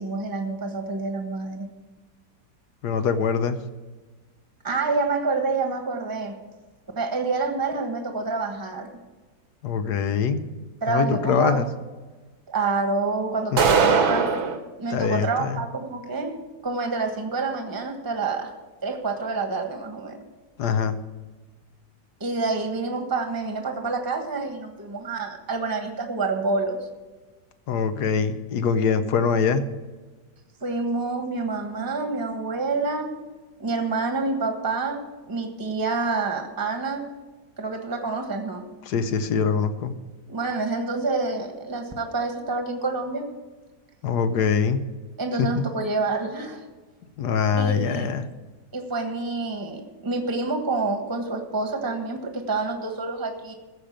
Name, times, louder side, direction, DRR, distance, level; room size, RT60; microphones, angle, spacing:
voice 1, 0.0-1.7 4.6-6.3 7.0-8.9 10.8-11.6 12.5-14.3 14.8-16.4 16.6-18.5 18.8-20.2 22.2-26.8 30.6-33.2 33.6-35.0 35.3-37.1 37.6-38.6 40.3-43.3 45.2-46.6 47.6-48.2 48.7-53.5, right 3 dB, 15° right, 4 dB, 1.2 m, -27 dB
voice 2, 2.8-3.6 9.6-10.6 10.9-11.7 13.5-13.6 14.9-15.6 20.6-21.0 27.7-29.7 38.9-40.0 44.0-44.8 45.4-45.7 47.2-48.3, left 6 dB, 70° left, 10 dB, 1.4 m, -23 dB
sound 1, 13.6-14.6, right 5 dB, 65° right, 1.6 m, -20 dB
14.5 x 5.1 x 8.8 m, 1.3 s
omnidirectional pair, 1.9 m